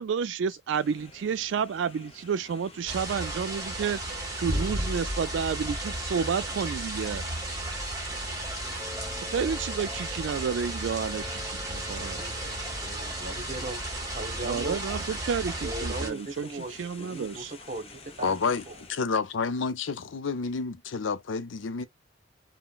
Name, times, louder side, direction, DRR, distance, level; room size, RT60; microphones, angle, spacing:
voice 1, 0.0-4.0 4.4-7.2 9.2-12.2 14.4-17.5, right 6 dB, 70° right, 0.3 m, -30 dB
sound 1, 0.7-18.9, left 3 dB, 30° left, 0.6 m, -50 dB
sound 2, 2.9-16.1, right 1 dB, 20° right, 1.1 m, -34 dB
sound 3, 8.8-18.0, left 3 dB, 10° left, 1.1 m, -49 dB
voice 2, 12.0-14.8 15.6-18.4 18.7-18.8, right 2 dB, 40° right, 0.9 m, -38 dB
voice 3, 18.2-18.6 18.9-21.8, left 5 dB, 80° left, 0.5 m, -29 dB
3.7 x 2.1 x 2.3 m
head